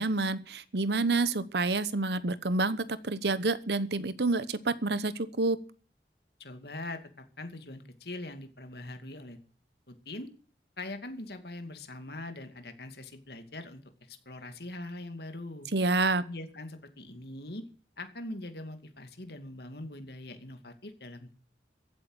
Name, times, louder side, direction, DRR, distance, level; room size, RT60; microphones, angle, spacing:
voice 1, 0.0-5.6 15.7-16.2, right 3 dB, 75° right, 16 dB, 1.0 m, -28 dB
voice 2, 6.4-7.0 7.4-9.4 9.9-10.3 10.8-13.8 14.1-15.7 16.2-17.6 18.0-21.3, left 2 dB, 65° left, 7 dB, 2.4 m, -42 dB
15.0 x 8.7 x 8.1 m, 0.42 s
head